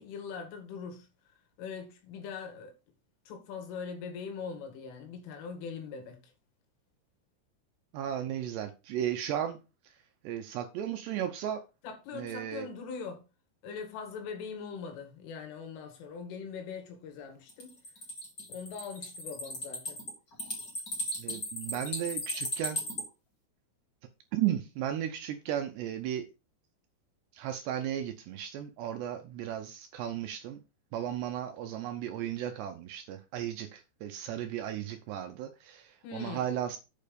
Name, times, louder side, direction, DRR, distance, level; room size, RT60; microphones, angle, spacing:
voice 1, 0.0-2.8 3.3-6.3 11.8-13.2 13.6-17.8 18.5-20.0 36.0-36.5, left 5 dB, 75° left, 4.3 m, -42 dB
voice 2, 7.9-9.6 10.2-11.6 12.1-12.7 21.2-22.8 24.3-26.3 27.3-30.6 30.9-36.8, right 11 dB, 85° right, 2.4 m, -35 dB
sound 1, 17.5-23.0, left 1 dB, 30° left, 1.7 m, -36 dB
8.9 x 5.4 x 5.2 m
omnidirectional pair, 6.0 m